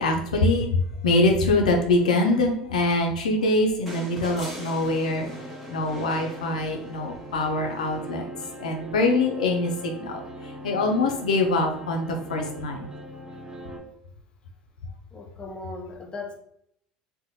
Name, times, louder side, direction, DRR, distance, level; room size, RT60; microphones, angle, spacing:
voice 1, 0.0-5.3 5.7-8.2 8.6-10.2 10.6-12.8, left 2 dB, 85° left, 2 dB, 0.4 m, -24 dB
sound 1, 3.9-7.2 8.7-8.8, equal, ahead, 1.2 m, -40 dB
sound 2, 5.0-13.8, right 1 dB, 15° right, 0.7 m, -41 dB
voice 2, 15.1-16.4, left 3 dB, 25° left, 3 dB, 0.5 m, -38 dB
2.5 x 2.1 x 2.7 m, 0.71 s
hypercardioid pair, 75°, 4 cm